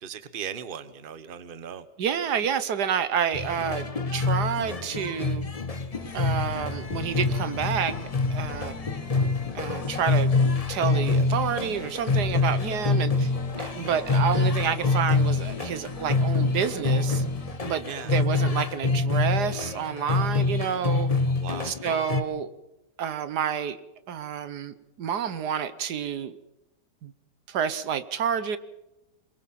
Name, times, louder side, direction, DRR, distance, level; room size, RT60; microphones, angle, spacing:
voice 1, 0.0-1.9 12.2-12.5 17.9-18.1 21.2-21.8, right 8 dB, 35° right, 13 dB, 1.1 m, -38 dB
voice 2, 2.0-5.5 6.1-7.9 8.3-8.7 9.5-10.3 10.7-13.3 13.6-17.2 17.6-21.1 21.6-22.5 23.0-23.8 24.1-26.3 27.0-27.1 27.5-28.6, right 8 dB, 75° right, 13 dB, 1.5 m, -29 dB
sound 1, 3.3-22.2, left 3 dB, 25° left, 0.9 m, -26 dB
sound 2, 5.9-17.6, left 4 dB, 65° left, 2.5 m, -44 dB
23.0 x 22.0 x 5.9 m, 0.94 s
omnidirectional pair, 1.8 m